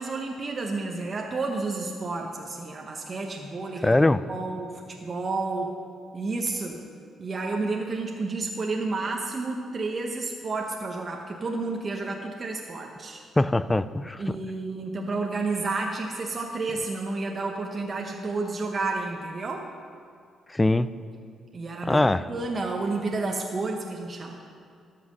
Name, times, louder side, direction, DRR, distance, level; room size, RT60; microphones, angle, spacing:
voice 1, 0.0-4.0 4.3-5.7 6.1-6.8 7.2-13.2 14.2-19.6 21.5-24.4, right 3 dB, 35° right, 1 dB, 1.0 m, -31 dB
voice 2, 3.8-4.2 13.4-14.2 20.5-20.9 21.8-22.3, left 2 dB, 15° left, 15 dB, 0.3 m, -22 dB
12.5 x 5.9 x 6.6 m, 2.2 s
cardioid pair, 90°, 0 cm